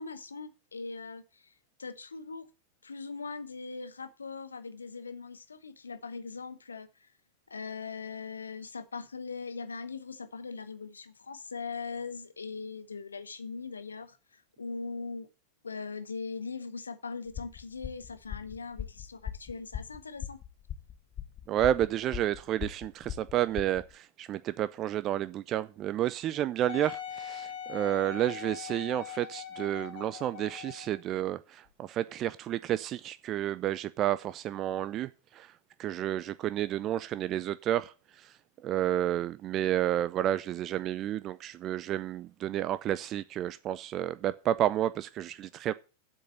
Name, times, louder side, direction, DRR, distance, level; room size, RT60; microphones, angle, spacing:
voice 1, 0.0-1.5 1.8-2.5 2.8-7.1 7.5-15.3 15.6-20.4, left 4 dB, 75° left, 0.9 m, -40 dB
sound 1, 17.3-23.9, left 10 dB, 30° left, 1.2 m, -40 dB
voice 2, 21.5-35.5 35.8-38.3 38.6-45.7, right 12 dB, 35° right, 0.4 m, -31 dB
Wind instrument woodwind instrument, 26.7-31.0 31.7-31.8, left 9 dB, 50° left, 2.3 m, -41 dB
7.8 x 6.3 x 7.8 m
figure-of-eight pair, 90°, 0 cm